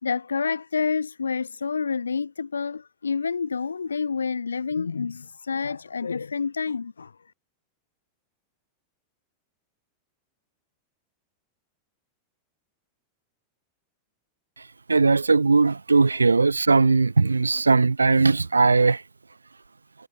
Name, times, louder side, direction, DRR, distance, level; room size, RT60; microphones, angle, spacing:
voice 1, 0.0-7.1, left 5 dB, 75° left, 1.9 m, -28 dB
voice 2, 14.9-19.0, right 4 dB, 80° right, 1.6 m, -19 dB
figure-of-eight pair, 90°, 0 cm